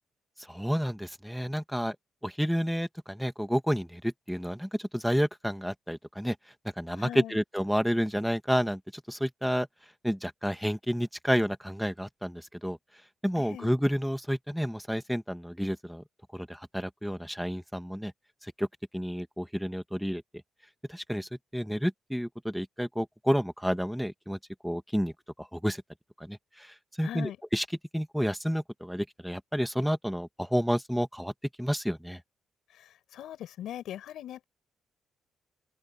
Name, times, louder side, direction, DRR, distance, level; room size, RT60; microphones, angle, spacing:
voice 1, 0.5-2.0 2.2-6.3 6.8-9.7 10.0-12.8 13.2-16.0 16.3-18.1 18.4-18.7 18.9-20.2 20.9-24.4 24.6-25.1 25.4-25.8 26.2-27.6 27.9-31.3 31.6-32.2, equal, ahead, 1.4 m, -30 dB
voice 2, 7.0-7.4 13.4-13.7 27.0-27.4 32.7-34.4, left 11 dB, 80° left, 7.3 m, -40 dB
open air
cardioid pair, 135°, 0 cm